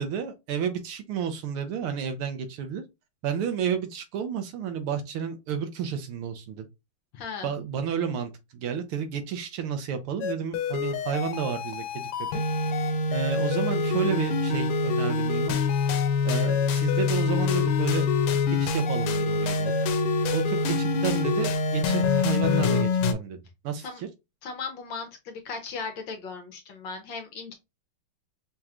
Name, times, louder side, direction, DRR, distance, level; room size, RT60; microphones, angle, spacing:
voice 1, 0.0-2.8 3.2-6.7 7.4-12.1 13.1-15.6 16.2-19.8 20.3-23.4 23.6-24.1, right 7 dB, 80° right, 1.7 m, -31 dB
voice 2, 7.1-7.5 23.8-24.0 24.4-27.5, left 5 dB, 65° left, 1.4 m, -37 dB
sound 1, 10.2-23.1, left 4 dB, 85° left, 1.5 m, -25 dB
5.7 x 3.0 x 2.4 m
omnidirectional pair, 2.4 m